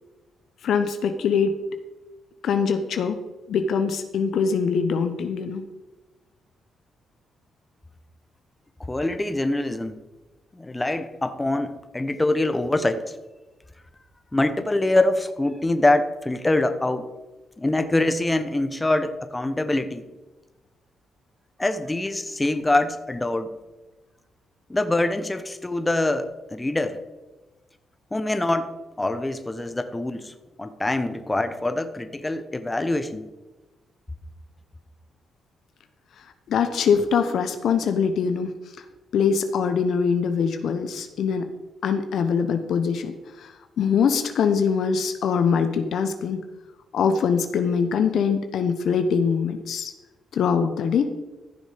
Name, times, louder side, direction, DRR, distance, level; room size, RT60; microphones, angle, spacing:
voice 1, 0.6-1.5 2.4-3.2 3.5-5.6 36.5-38.5 39.1-41.5 41.8-43.5 43.8-46.4 46.9-49.9 50.3-51.1, left 6 dB, 70° left, 8 dB, 1.0 m, -23 dB
voice 2, 8.8-9.9 10.5-13.1 14.3-17.1 17.6-20.1 21.6-23.5 24.7-27.0 28.1-28.7 29.0-30.3 30.6-33.2, left 2 dB, 20° left, 10 dB, 1.2 m, -24 dB
14.5 x 6.3 x 5.2 m, 1.1 s
supercardioid pair, 55°, 0 cm